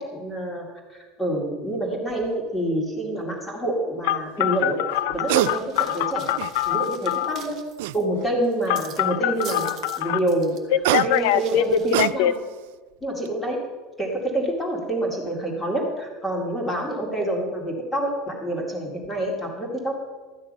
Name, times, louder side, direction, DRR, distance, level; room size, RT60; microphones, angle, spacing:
voice 1, 0.1-4.8 5.1-6.3 6.7-7.6 7.9-9.7 10.0-10.7 11.0-12.4 13.0-13.6 14.0-19.9, right 1 dB, 10° left, 0 dB, 2.3 m, -27 dB
sound 1, 2.1-2.3 5.0-5.5 6.0-6.8 7.8-8.4 10.5-12.6 13.0-13.3, right 16 dB, 75° right, 0.3 m, -26 dB
Telephone, 4.0-7.4 8.7-10.2 10.7-12.3, left 13 dB, 65° left, 0.5 m, -23 dB
sound 2, 5.3-8.0 8.4-9.0 9.3-10.0 10.3-10.6 11.1-12.1, right 8 dB, 30° right, 1.3 m, -43 dB
13.0 x 9.4 x 5.4 m, 1.3 s
cardioid pair, 175°, 0 cm